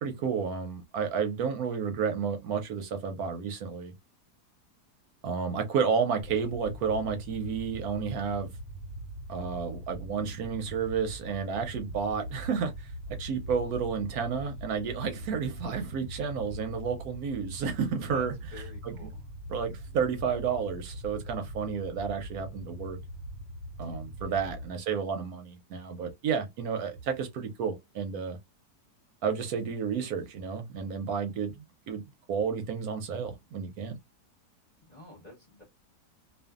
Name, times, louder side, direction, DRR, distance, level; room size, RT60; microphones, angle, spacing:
voice 1, 0.0-3.9 5.2-8.5 9.3-12.9 13.2-18.3 18.8-18.9 19.5-23.0 23.8-28.4 29.2-32.0 32.3-34.0, right 6 dB, 75° right, 1.0 m, -31 dB
sound 1, 6.2-24.7, right 1 dB, 80° left, 1.2 m, -42 dB
voice 2, 18.1-19.2 19.9-20.0 23.8-24.5 34.8-35.6, left 3 dB, 30° left, 0.9 m, -50 dB
2.5 x 2.5 x 2.3 m
omnidirectional pair, 1.7 m